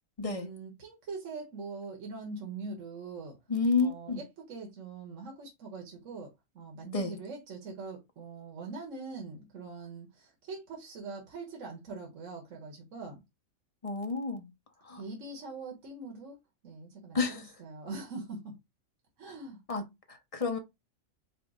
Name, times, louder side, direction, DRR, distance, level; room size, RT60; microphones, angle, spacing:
voice 1, 0.2-3.4 3.8-6.3 6.5-13.2 15.0-16.4 16.6-18.5 19.2-19.6, right 3 dB, 65° right, 1.5 m, -42 dB
voice 2, 3.5-4.2 6.9-7.2 13.8-14.5 14.8-15.0 17.1-17.5 19.7-20.6, left 4 dB, 35° left, 0.6 m, -30 dB
5.0 x 2.1 x 4.8 m
omnidirectional pair, 1.4 m